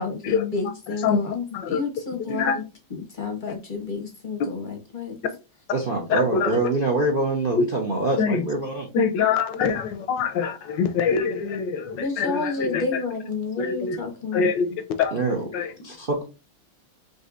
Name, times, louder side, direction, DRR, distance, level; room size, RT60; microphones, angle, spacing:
voice 1, 0.0-2.6 2.9-5.2 11.9-14.5, left 4 dB, 40° left, 0.7 m, -30 dB
voice 2, 2.3-2.6 6.1-6.5 7.6-7.7 8.2-8.4 8.9-13.0 13.6-14.0 14.3-15.1 15.5-15.7, left 5 dB, 75° left, 1.2 m, -24 dB
voice 3, 5.7-8.9 15.1-15.5 15.8-16.2, right 2 dB, 50° right, 0.6 m, -24 dB
5.3 x 3.0 x 2.5 m
omnidirectional pair, 2.2 m